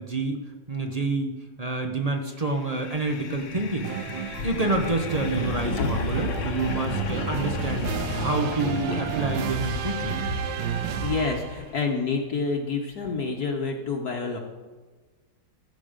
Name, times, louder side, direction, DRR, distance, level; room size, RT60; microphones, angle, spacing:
voice 1, 0.0-3.9 4.4-10.2, right 2 dB, 35° right, 4 dB, 0.6 m, -28 dB
sound 1, 2.6-11.7, left 5 dB, 80° left, 1.7 m, -33 dB
sound 2, 3.8-11.7, right 10 dB, 85° right, 1.4 m, -32 dB
voice 2, 10.7-14.4, left 4 dB, 60° left, 1 dB, 1.5 m, -28 dB
14.5 x 7.7 x 5.1 m, 1.3 s
omnidirectional pair, 2.0 m